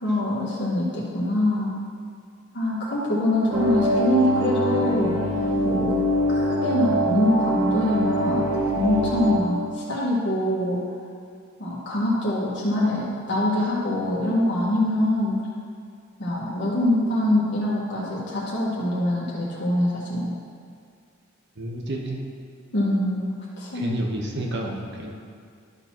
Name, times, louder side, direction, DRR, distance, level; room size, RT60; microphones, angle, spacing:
voice 1, 0.0-1.8 2.5-5.2 5.6-5.9 6.3-8.5 8.8-10.8 11.6-15.4 16.2-20.3 22.7-24.0, left 1 dB, 60° left, -6 dB, 1.6 m, -24 dB
sound 1, 3.5-9.4, equal, 85° right, 1.0 m, -24 dB
voice 2, 21.6-22.2 23.7-25.1, right 1 dB, 55° right, 0 dB, 1.0 m, -30 dB
12.5 x 6.6 x 3.0 m, 2.2 s
head